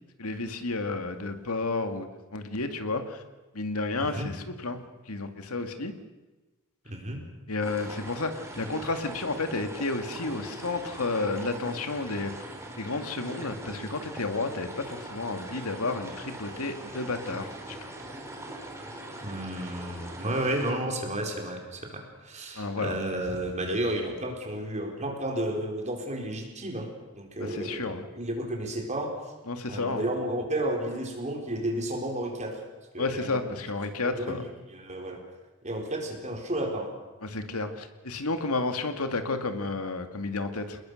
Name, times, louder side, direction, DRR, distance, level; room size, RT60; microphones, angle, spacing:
voice 1, 0.2-3.2 3.5-5.9 7.5-12.4 12.8-17.9 22.6-23.0 27.5-28.0 29.5-30.1 33.0-34.4 37.2-40.8, left 3 dB, 80° left, 7 dB, 2.2 m, -31 dB
voice 2, 6.8-7.2 19.2-29.1 29.7-32.6 32.9-33.5 34.0-35.2 35.6-36.9, right 1 dB, 35° right, 2 dB, 4.5 m, -32 dB
sound 1, 7.6-20.7, right 1 dB, 15° right, 3.9 m, -41 dB
27.5 x 21.0 x 6.5 m, 1.2 s
head